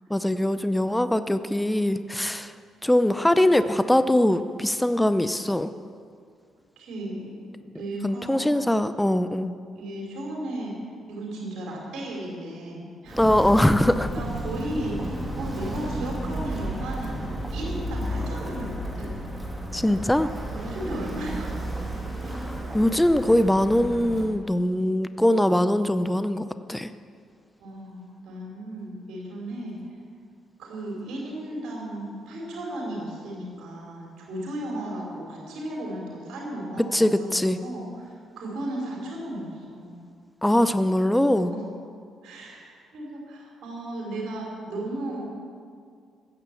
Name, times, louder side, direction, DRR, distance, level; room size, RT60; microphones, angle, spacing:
voice 1, 0.1-2.5 2.8-5.7 8.0-9.5 13.2-14.1 19.7-20.3 22.3-26.4 26.7-26.9 36.9-37.6 40.4-41.5, left 1 dB, 5° left, 11 dB, 0.6 m, -22 dB
voice 2, 6.8-7.4 7.6-8.5 9.7-13.2 14.1-19.1 20.5-21.7 22.2-22.5 27.6-29.9 30.6-40.0 41.2-41.6 42.2-45.2, right 1 dB, 75° right, -2 dB, 3.4 m, -35 dB
Walk footsteps, 13.1-24.3, right 1 dB, 10° right, 2.6 m, -32 dB
16.0 x 6.8 x 8.3 m, 2.2 s
cardioid pair, 90°, 0 cm